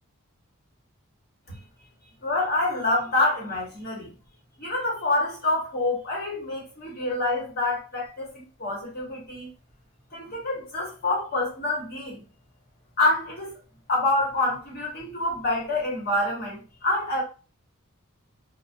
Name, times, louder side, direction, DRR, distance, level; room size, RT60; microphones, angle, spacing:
voice 1, 2.2-4.1 4.6-9.5 10.1-12.2 13.0-13.5 13.9-17.2, left 2 dB, 45° left, 0.9 m, -27 dB
2.4 x 2.1 x 2.5 m
head